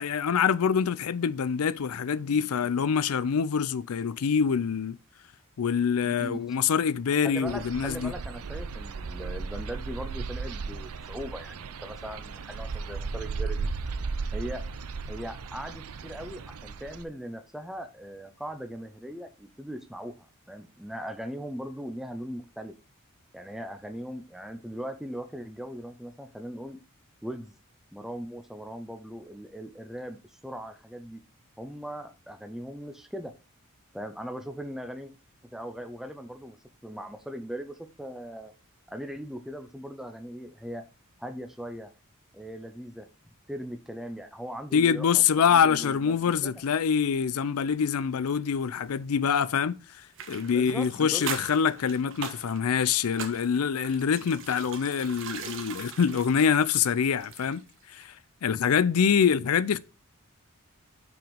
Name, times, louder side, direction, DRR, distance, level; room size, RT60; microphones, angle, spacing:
voice 1, 0.0-5.0 5.6-8.1 44.7-49.8 50.3-57.6 57.9-58.1 58.4-59.8, left 7 dB, 75° left, 0.4 m, -25 dB
voice 2, 6.0-6.4 7.3-13.7 14.3-14.6 15.1-22.7 23.3-26.8 27.2-27.5 27.9-31.2 31.6-33.3 33.9-35.1 35.5-36.6 36.8-38.5 38.9-40.8 41.2-41.9 42.3-43.1 43.5-46.5 50.5-51.3, equal, ahead, 0.6 m, -39 dB
sound 1, 7.4-17.0, right 4 dB, 85° right, 0.6 m, -36 dB
sound 2, 50.1-57.7 58.0-58.1, right 6 dB, 60° right, 1.2 m, -41 dB
6.1 x 5.0 x 5.2 m
head